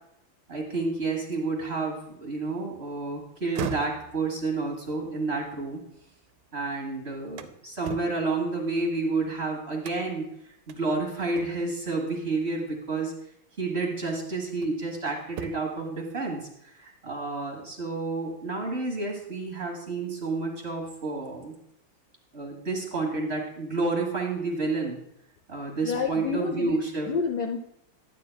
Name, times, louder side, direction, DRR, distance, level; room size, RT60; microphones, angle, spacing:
voice 1, 0.5-5.8 6.5-10.3 10.7-13.1 13.6-21.6 22.3-25.0 25.5-27.1, right 3 dB, 35° right, 0 dB, 1.5 m, -30 dB
sound 1, 3.3-6.5 6.9-9.3 9.8-10.3 10.7-10.8 11.3-11.9 13.1-13.2 13.8-14.9 15.3-15.9, right 8 dB, 80° right, 1.4 m, -41 dB
voice 2, 25.8-26.8 27.1-27.6, left 5 dB, 65° left, 3 dB, 1.0 m, -28 dB
11.5 x 9.3 x 2.2 m, 0.75 s
omnidirectional pair, 2.4 m